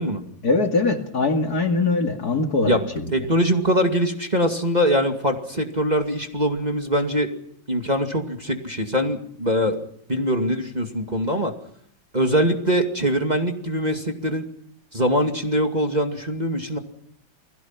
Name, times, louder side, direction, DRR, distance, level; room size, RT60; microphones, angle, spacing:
voice 1, 0.4-3.1, left 3 dB, 50° left, 4 dB, 2.7 m, -22 dB
voice 2, 3.1-7.3 7.7-9.8 10.1-11.5 12.1-14.4 14.9-16.8, equal, 20° right, 3 dB, 2.4 m, -22 dB
29.5 x 21.0 x 6.0 m, 0.68 s
omnidirectional pair, 2.1 m